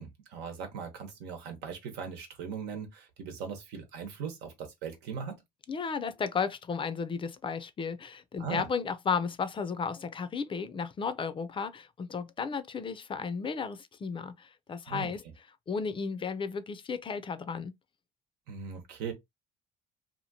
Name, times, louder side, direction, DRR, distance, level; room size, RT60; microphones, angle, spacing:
voice 1, 0.0-5.4 8.4-8.7 14.9-15.1 18.5-19.1, right 6 dB, 90° right, 1.1 m, -39 dB
voice 2, 5.7-15.2 15.7-17.7, left 5 dB, 30° left, 0.4 m, -34 dB
2.8 x 2.5 x 2.7 m
cardioid pair, 110°, 17 cm